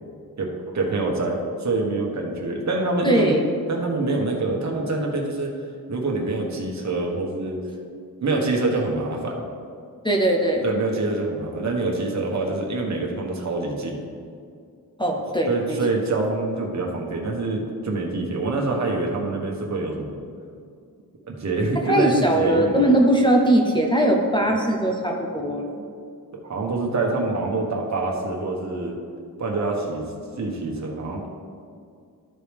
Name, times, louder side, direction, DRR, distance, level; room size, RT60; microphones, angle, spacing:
voice 1, 0.4-3.4 3.7-5.5 5.9-7.6 8.2-9.4 10.6-14.0 15.5-20.1 21.3-22.9 26.3-29.0 29.4-30.1 30.4-31.3, right 2 dB, 50° right, 0 dB, 1.3 m, -25 dB
voice 2, 3.0-3.4 10.0-10.7 15.0-15.8 21.8-25.8, right 1 dB, 15° left, 1 dB, 0.8 m, -20 dB
13.0 x 4.9 x 3.5 m, 2.3 s
wide cardioid pair, 125°, 35 cm